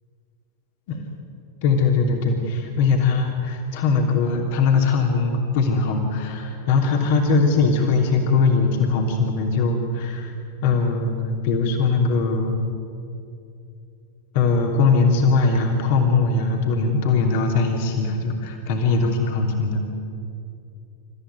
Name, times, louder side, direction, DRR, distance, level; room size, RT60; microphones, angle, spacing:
voice 1, 1.6-10.3 10.6-12.6 14.3-19.8, left 4 dB, 50° left, 2 dB, 3.1 m, -20 dB
28.0 x 14.5 x 9.4 m, 2.6 s
figure-of-eight pair, 90°, 0 cm